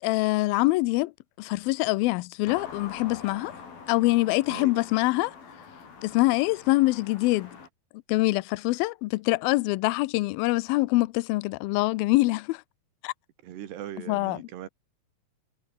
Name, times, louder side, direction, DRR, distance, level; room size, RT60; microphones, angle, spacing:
voice 1, 0.0-1.1 1.4-3.5 3.9-5.3 6.0-7.6 8.1-12.6 13.0-13.1 14.1-14.4, left 21 dB, 80° left, 2.3 m, -24 dB
sound 1, 2.5-7.7, left 5 dB, 60° left, 7.0 m, -45 dB
voice 2, 4.2-4.8 13.4-14.7, right 11 dB, 90° right, 4.1 m, -40 dB
omnidirectional pair, 4.6 m